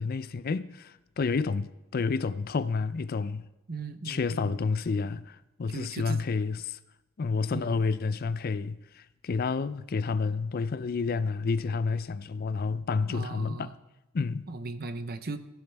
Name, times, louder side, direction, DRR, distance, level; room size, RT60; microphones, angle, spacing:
voice 1, 0.0-3.5 4.1-6.8 7.2-13.7 14.1-14.5, left 4 dB, 45° left, 0.4 m, -30 dB
voice 2, 3.7-4.6 5.7-6.2 7.5-7.8 13.1-13.7 14.5-15.4, right 3 dB, 45° right, 0.8 m, -37 dB
16.5 x 16.0 x 3.4 m
head